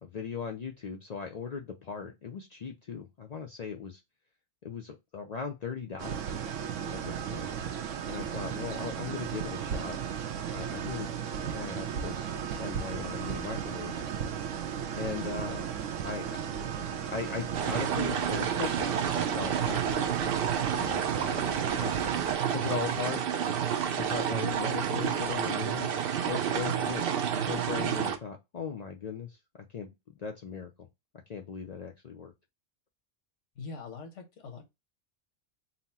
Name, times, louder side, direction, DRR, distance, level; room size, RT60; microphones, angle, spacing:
voice 1, 0.0-4.0 4.6-6.4 6.9-7.5 8.1-10.0 10.5-12.3 12.6-13.9 14.9-15.7 16.0-16.3 17.1-22.2 22.5-23.2 23.9-25.9 26.2-27.0 27.4-29.4 29.7-29.9 30.2-30.9 31.3-32.3, left 6 dB, 55° left, 0.4 m, -38 dB
sound 1, 6.0-22.4, right 8 dB, 85° right, 1.0 m, -35 dB
sound 2, 17.5-28.2, right 8 dB, 60° right, 0.7 m, -30 dB
voice 2, 33.6-34.6, left 4 dB, 80° left, 1.3 m, -42 dB
4.1 x 2.0 x 4.0 m
omnidirectional pair, 1.2 m